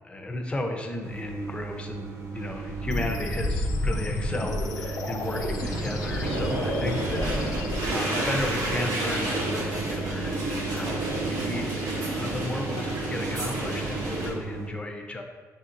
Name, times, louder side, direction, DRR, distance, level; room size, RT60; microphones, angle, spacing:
voice 1, 0.0-15.2, left 1 dB, 15° left, 3 dB, 0.6 m, -34 dB
sound 1, 1.0-14.7, right 5 dB, 55° right, 0.7 m, -37 dB
sound 2, 2.4-14.3, right 1 dB, 75° right, 1.0 m, -30 dB
sound 3, 2.9-7.9, left 3 dB, 80° left, 0.5 m, -34 dB
6.7 x 2.8 x 2.5 m, 1.4 s
cardioid pair, 115°, 6 cm